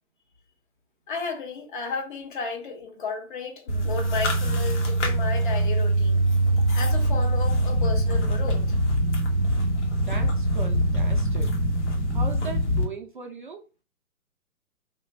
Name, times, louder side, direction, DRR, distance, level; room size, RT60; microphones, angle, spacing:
voice 1, 1.1-6.2 6.7-8.8, left 4 dB, 35° left, 0.9 m, -33 dB
sound 1, 3.7-12.8, right 1 dB, 55° left, 1.1 m, -23 dB
voice 2, 9.9-11.5 12.1-13.6, right 4 dB, 40° right, 0.4 m, -38 dB
3.2 x 2.4 x 3.1 m
hypercardioid pair, 140°, 42 cm